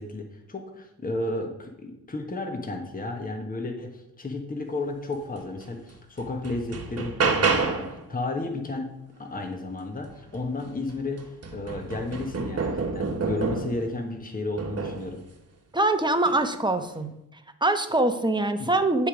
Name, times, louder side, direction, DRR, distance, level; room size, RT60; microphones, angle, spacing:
voice 1, 0.0-8.9 9.2-15.2 18.6-18.7, left 2 dB, 20° left, 3 dB, 1.4 m, -33 dB
sound 1, 5.6-5.7 6.2-8.0 10.4-10.5 10.9-13.9 14.6-15.1 16.1-16.4, right 4 dB, 35° right, 1.4 m, -28 dB
voice 2, 15.7-17.1 17.6-19.1, right 2 dB, 10° right, 7 dB, 1.1 m, -23 dB
10.0 x 3.6 x 5.0 m, 0.87 s
supercardioid pair, 50°, 40 cm